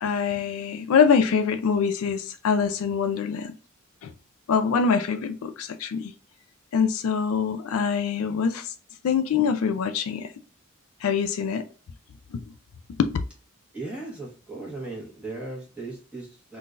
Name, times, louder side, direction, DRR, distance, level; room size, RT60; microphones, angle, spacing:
voice 1, 0.0-3.5 4.0-4.1 4.5-6.1 6.7-8.7 9.0-10.3 11.0-11.6 12.3-12.4 13.0-13.1, left 6 dB, 70° left, 0.3 m, -24 dB
voice 2, 13.7-16.6, right 2 dB, 5° right, 1.2 m, -37 dB
3.7 x 2.6 x 2.4 m
head